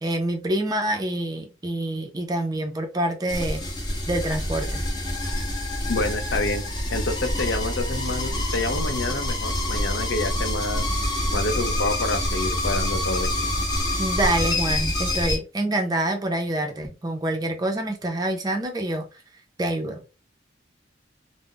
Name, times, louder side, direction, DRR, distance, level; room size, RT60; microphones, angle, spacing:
voice 1, 0.0-3.7 4.1-4.8 14.0-19.1 19.6-20.1, right 1 dB, 20° right, 0.5 m, -26 dB
sound 1, 3.3-15.4, left 1 dB, 20° left, 0.6 m, -26 dB
voice 2, 5.9-6.6 6.9-10.9 11.3-13.3, left 2 dB, 75° left, 0.5 m, -28 dB
2.3 x 2.0 x 3.7 m
head